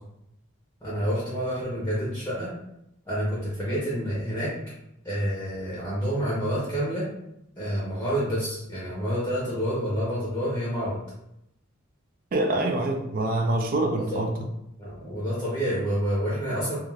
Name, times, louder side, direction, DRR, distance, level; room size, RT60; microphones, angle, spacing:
voice 1, 0.8-2.5 3.1-4.6 5.0-7.1 7.6-11.0 13.9-14.2 14.8-16.8, equal, 10° left, -8 dB, 0.6 m, -28 dB
voice 2, 12.3-14.3, right 2 dB, 45° right, 3 dB, 0.3 m, -25 dB
2.3 x 2.3 x 3.2 m, 0.83 s
head